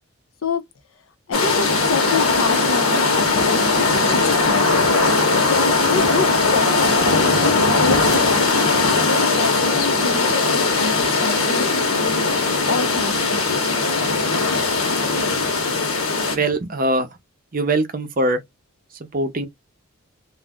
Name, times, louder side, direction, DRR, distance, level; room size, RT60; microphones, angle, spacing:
sound 1, 1.3-16.4, left 3 dB, 90° left, 1.0 m, -19 dB
voice 1, 1.3-4.7 5.4-12.3 12.7-13.6, left 4 dB, 65° left, 0.6 m, -28 dB
voice 2, 16.3-17.1 17.5-18.4 19.1-19.5, right 2 dB, 40° right, 0.6 m, -21 dB
2.4 x 2.0 x 3.4 m
head